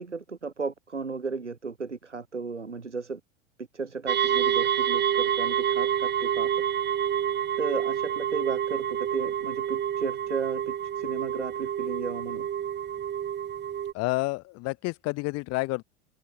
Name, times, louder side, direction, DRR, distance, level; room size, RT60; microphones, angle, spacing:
voice 1, 0.0-3.2 3.7-6.5 7.6-12.5, right 4 dB, 85° right, 2.0 m, -35 dB
sound 1, 4.1-13.9, right 10 dB, 30° right, 5.8 m, -28 dB
voice 2, 13.9-15.8, left 24 dB, 45° left, 4.8 m, -29 dB
figure-of-eight pair, 80°, 35 cm